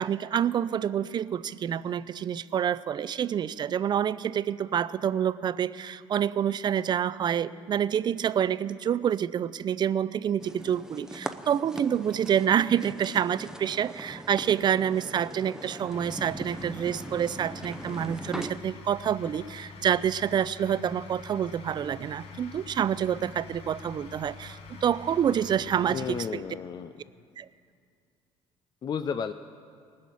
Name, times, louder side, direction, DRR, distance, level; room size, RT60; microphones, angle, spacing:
voice 1, 0.0-26.4 27.4-27.5, right 9 dB, 40° right, 17 dB, 0.4 m, -27 dB
sound 1, 10.4-18.5, right 1 dB, 5° right, 0.8 m, -41 dB
sound 2, 15.9-26.3, left 5 dB, 60° left, 1.3 m, -46 dB
voice 2, 25.9-26.9 28.8-29.3, left 7 dB, 40° left, 10 dB, 0.5 m, -32 dB
19.0 x 6.4 x 8.4 m, 2.3 s
supercardioid pair, 80°, 11 cm